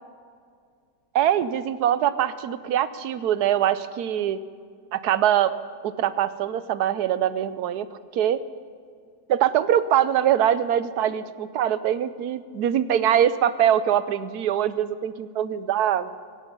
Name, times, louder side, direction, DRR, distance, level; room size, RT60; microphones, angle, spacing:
voice 1, 1.1-4.4 4.9-5.5 5.8-7.9 8.1-8.4 9.3-16.1, right 10 dB, 70° right, 14 dB, 1.1 m, -23 dB
16.5 x 16.0 x 5.4 m, 2.2 s
omnidirectional pair, 1.9 m